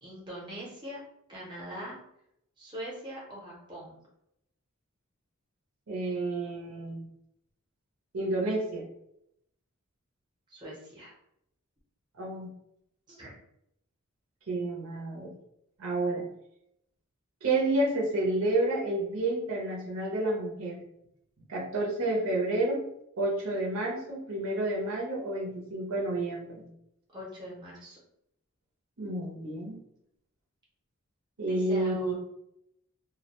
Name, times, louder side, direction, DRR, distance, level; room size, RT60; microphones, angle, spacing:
voice 1, 0.0-1.0 1.3-2.0 2.6-3.9 10.5-11.1 13.1-13.4 27.1-28.0 31.5-32.1, right 1 dB, 20° right, -5 dB, 0.7 m, -41 dB
voice 2, 5.9-7.1 8.1-8.9 12.1-12.5 14.5-15.3 15.8-16.2 17.4-20.8 21.5-22.8 23.2-26.7 29.0-29.8 31.4-32.1, right 2 dB, 75° right, -2 dB, 0.6 m, -30 dB
2.3 x 2.1 x 2.8 m, 0.77 s
head